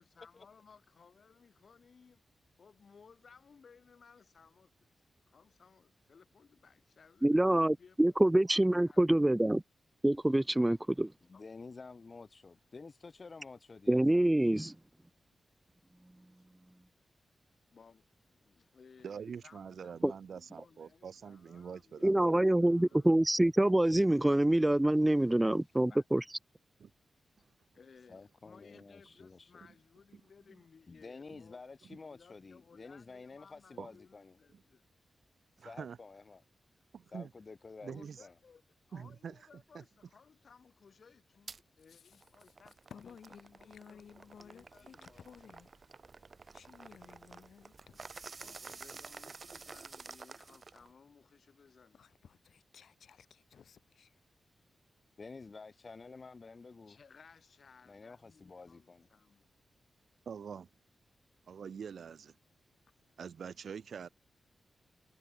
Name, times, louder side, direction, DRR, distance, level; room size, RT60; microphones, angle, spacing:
voice 1, 0.0-2.3 2.6-4.7 5.3-8.2 8.5-9.0 11.3-11.4 16.4-16.5 17.7-23.1 25.9-26.1 27.3-27.4 27.7-31.6 32.0-34.8 37.9-38.6 38.9-42.7 43.0-43.2 43.5-45.2 48.4-52.1 56.9-59.5 63.1-63.2, left 5 dB, 55° left, 4.6 m, -61 dB
voice 2, 7.2-9.6 10.0-11.1 13.9-14.7 20.0-20.1 22.0-26.2, right 1 dB, 10° right, 0.3 m, -26 dB
voice 3, 11.3-14.2 25.2-25.3 28.1-29.6 30.9-34.4 35.6-36.4 37.1-38.3 55.2-57.0 57.9-59.1, left 4 dB, 35° left, 1.2 m, -50 dB
voice 4, 19.0-22.5 22.9-23.0 26.8-26.9 33.8-33.9 34.5-34.6 35.6-36.0 37.1-37.3 37.8-38.2 38.9-39.4 39.7-39.8 60.3-60.7 61.5-62.3 63.2-64.1, right 7 dB, 70° right, 1.7 m, -45 dB
sound 1, 41.5-41.6 42.1-50.9, right 4 dB, 40° right, 6.0 m, -51 dB
voice 5, 41.9-42.5 42.9-45.7 46.5-48.3 51.9-54.1, left 7 dB, 80° left, 7.2 m, -56 dB
wide cardioid pair, 140°, 0 cm